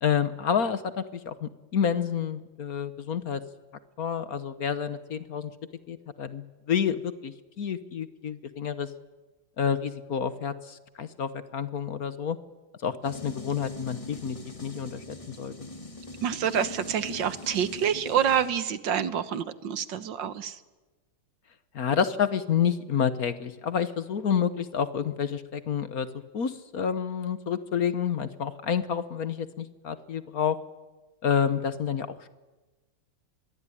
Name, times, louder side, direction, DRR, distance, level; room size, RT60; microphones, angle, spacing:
voice 1, 0.0-3.4 4.0-5.5 5.9-8.9 9.6-12.4 12.8-15.7 21.7-26.1 26.3-30.6 31.2-32.3, left 7 dB, 55° left, 13 dB, 1.4 m, -29 dB
sound 1, 13.0-18.5, left 1 dB, 15° left, 2.0 m, -42 dB
voice 2, 16.2-20.6, right 8 dB, 75° right, 13 dB, 1.8 m, -27 dB
26.5 x 22.5 x 9.9 m, 1.2 s
omnidirectional pair, 2.1 m